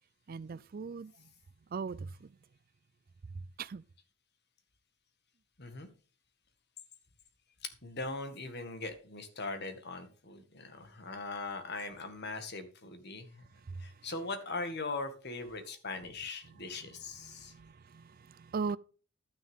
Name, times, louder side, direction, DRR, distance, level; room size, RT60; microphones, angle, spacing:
voice 1, 0.3-1.1 1.7-2.3 3.6-3.8 13.7-13.9 17.2-18.8, right 5 dB, 45° right, 0.4 m, -39 dB
voice 2, 7.6-13.4 13.8-17.5, left 3 dB, 50° left, 1.9 m, -40 dB
11.5 x 9.7 x 3.6 m
head